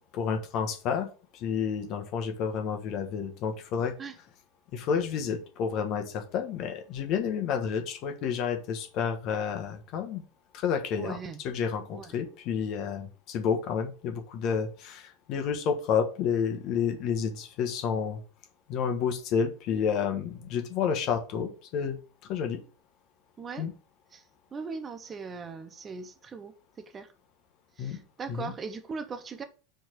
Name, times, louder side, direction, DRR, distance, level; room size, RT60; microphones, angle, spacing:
voice 1, 0.1-3.9 4.7-10.2 10.5-11.2 11.4-18.2 18.7-22.0 22.3-22.6 23.6-23.7 27.8-28.0 28.3-28.5, left 7 dB, 50° left, 1.2 m, -30 dB
voice 2, 11.0-11.4 11.9-12.1 23.4-23.7 24.1-24.2 24.5-27.1 27.8-29.4, right 5 dB, 25° right, 0.8 m, -39 dB
4.6 x 4.6 x 4.6 m
figure-of-eight pair, 85°, 0 cm